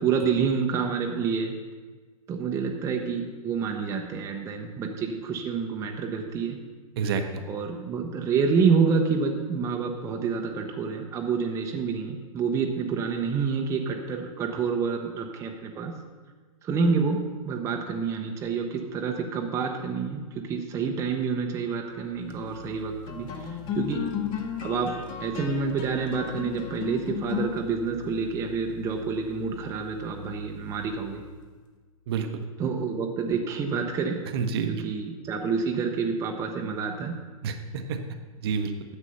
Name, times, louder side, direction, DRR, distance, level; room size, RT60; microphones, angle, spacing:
voice 1, 0.0-1.5 2.3-6.6 7.4-15.9 16.6-17.2 17.5-24.0 24.4-24.9 25.2-31.2 32.6-34.2 34.6-37.1, right 5 dB, 15° right, 2 dB, 0.7 m, -28 dB
voice 2, 7.0-7.4 32.1-32.4 34.3-34.7 37.4-38.0 38.4-38.7, right 6 dB, 40° right, 7 dB, 0.8 m, -28 dB
sound 1, 22.1-31.7, left 8 dB, 25° left, 0.8 m, -37 dB
10.0 x 7.3 x 5.5 m, 1.4 s
figure-of-eight pair, 110°, 19 cm